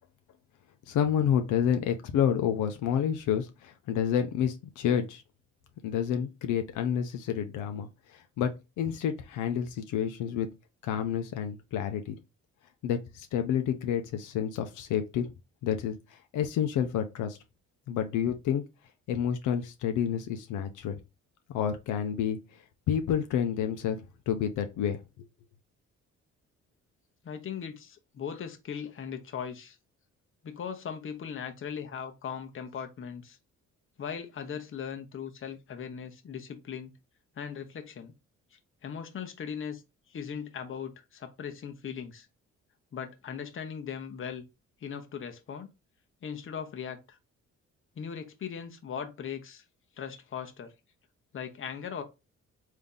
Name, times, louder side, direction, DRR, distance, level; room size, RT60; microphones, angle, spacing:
voice 1, 0.9-5.2 5.8-7.9 8.4-8.5 8.8-10.5 10.8-12.2 12.8-15.3 15.6-17.4 17.9-18.6 19.1-21.0 21.5-22.4 22.9-24.0 24.3-25.0, left 8 dB, 85° left, 0.6 m, -29 dB
voice 2, 27.2-29.8 30.4-33.4 34.0-36.9 37.4-38.1 38.5-39.8 40.1-42.3 42.9-44.4 44.8-45.7 46.2-47.2 48.0-49.6 50.0-50.7 51.3-52.0, left 7 dB, 45° left, 0.8 m, -39 dB
3.5 x 2.8 x 3.7 m
cardioid pair, 90°, 30 cm